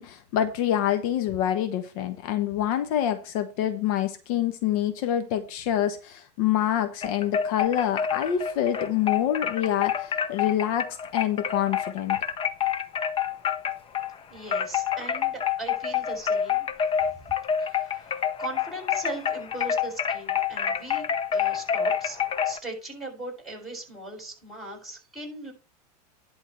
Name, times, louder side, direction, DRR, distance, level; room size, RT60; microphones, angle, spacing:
voice 1, 0.0-12.2, left 11 dB, 60° left, 1.2 m, -26 dB
sound 1, 7.0-14.2 14.5-22.6, left 8 dB, 25° left, 1.0 m, -27 dB
voice 2, 14.3-16.7 17.0-17.2 17.6-22.2 22.4-25.5, right 2 dB, ahead, 6.8 m, -39 dB
11.0 x 3.9 x 7.7 m
hypercardioid pair, 115°, 21 cm